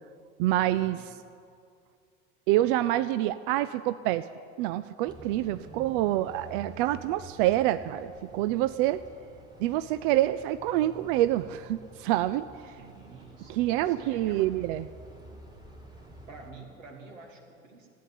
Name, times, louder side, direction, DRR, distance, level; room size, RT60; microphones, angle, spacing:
voice 1, 0.4-1.1 2.5-4.2 4.6-9.0 9.6-12.4 13.5-14.8, right 14 dB, 45° right, 13 dB, 0.4 m, -27 dB
sound 1, 5.1-16.5, right 1 dB, 10° right, 2.3 m, -49 dB
voice 2, 12.8-14.5 16.3-17.9, right 4 dB, 70° right, 2 dB, 2.7 m, -49 dB
14.5 x 9.5 x 8.9 m, 2.3 s
figure-of-eight pair, 75°, 41 cm